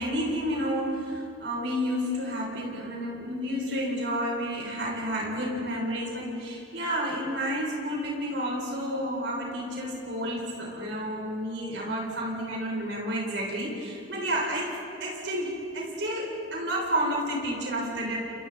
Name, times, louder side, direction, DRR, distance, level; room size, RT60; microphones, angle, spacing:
voice 1, 0.0-18.3, equal, 80° right, -3 dB, 6.8 m, -30 dB
30.0 x 29.0 x 4.2 m, 2.7 s
head